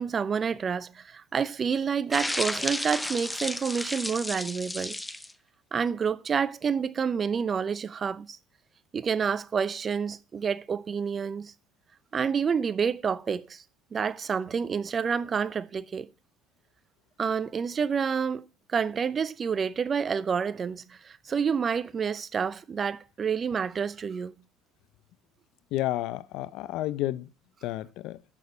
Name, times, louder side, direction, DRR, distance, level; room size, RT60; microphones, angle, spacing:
voice 1, 0.0-5.0 5.7-8.4 8.9-11.5 12.1-13.6 13.9-16.1 17.2-18.4 18.7-24.3, right 6 dB, 35° right, 0.6 m, -28 dB
sound 1, 2.1-5.3, left 1 dB, 5° left, 0.6 m, -33 dB
voice 2, 25.7-27.3 27.6-28.2, left 15 dB, 65° left, 0.6 m, -31 dB
7.3 x 6.6 x 6.8 m
supercardioid pair, 95°, 0 cm